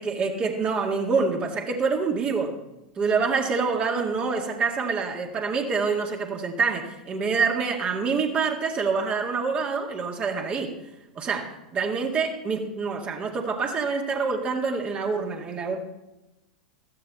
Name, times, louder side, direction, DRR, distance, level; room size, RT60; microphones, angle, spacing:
voice 1, 0.0-2.6 3.0-10.8 11.2-15.8, right 5 dB, 30° right, 2 dB, 2.1 m, -26 dB
14.5 x 12.0 x 4.2 m, 1.0 s
figure-of-eight pair, 90°, 4 cm